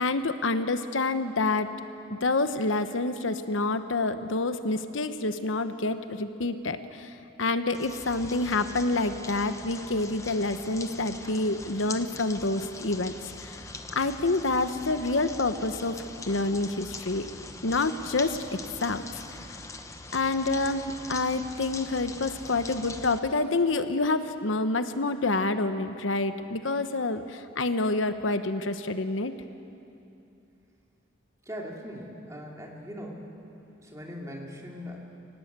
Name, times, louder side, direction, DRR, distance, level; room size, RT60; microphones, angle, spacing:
voice 1, 0.0-1.7 2.2-7.1 7.4-13.1 13.4-13.6 13.9-15.9 16.3-17.3 17.6-18.4 18.8-19.2 20.1-29.3, left 2 dB, 85° left, 10 dB, 1.0 m, -27 dB
sound 1, 7.7-23.2, left 3 dB, 15° left, 0.9 m, -42 dB
voice 2, 31.5-33.3 33.6-35.0, equal, 15° right, -1 dB, 2.7 m, -40 dB
24.0 x 18.5 x 8.2 m, 2.8 s
head